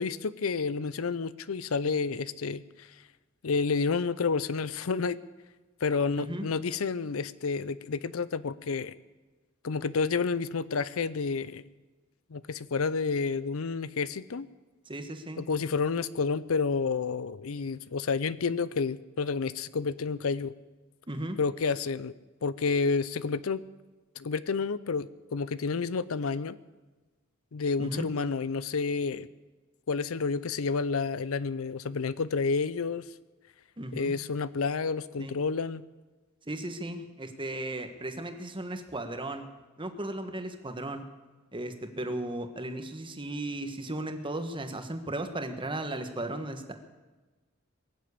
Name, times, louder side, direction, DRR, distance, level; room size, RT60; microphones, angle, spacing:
voice 1, 0.0-2.9 3.4-5.2 5.8-8.9 9.6-11.6 12.3-14.5 15.4-20.5 21.4-22.1 22.4-23.6 24.2-26.6 27.5-29.3 29.9-33.0 34.0-35.8, left 4 dB, 75° left, 17 dB, 0.6 m, -30 dB
voice 2, 6.2-6.5 14.9-15.4 21.1-21.4 27.8-28.1 33.8-34.1 35.2-35.3 36.5-39.5 39.8-41.0 41.5-46.7, right 1 dB, 25° right, 7 dB, 1.4 m, -36 dB
22.0 x 7.5 x 8.6 m, 1.2 s
head